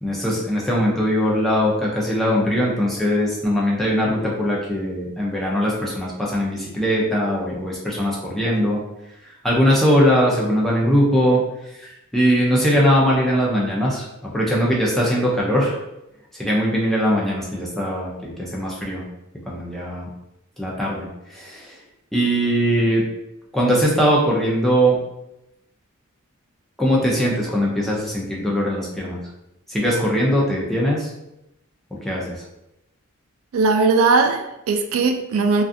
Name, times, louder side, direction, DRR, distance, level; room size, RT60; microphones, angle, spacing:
voice 1, 0.0-8.8 9.4-11.4 11.8-15.8 16.3-19.0 19.5-20.1 20.6-21.8 22.1-23.0 23.5-25.0 26.8-29.2 29.7-31.1 32.0-32.4, equal, ahead, 0.4 m, -20 dB
voice 2, 33.5-35.6, right 4 dB, 85° right, 0.3 m, -18 dB
2.5 x 2.3 x 2.5 m
head